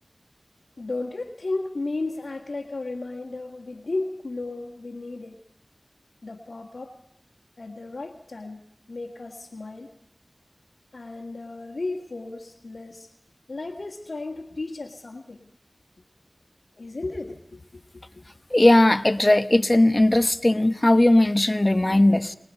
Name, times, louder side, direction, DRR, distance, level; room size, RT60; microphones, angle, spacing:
voice 1, 0.8-5.4 6.2-7.0 7.6-9.9 10.9-13.1 13.5-15.5 16.7-18.2, left 2 dB, 85° left, -3 dB, 1.7 m, -34 dB
voice 2, 18.5-22.4, left 1 dB, 35° left, 11 dB, 1.1 m, -18 dB
29.0 x 20.5 x 5.4 m, 0.72 s
wide cardioid pair, 45°, 0 cm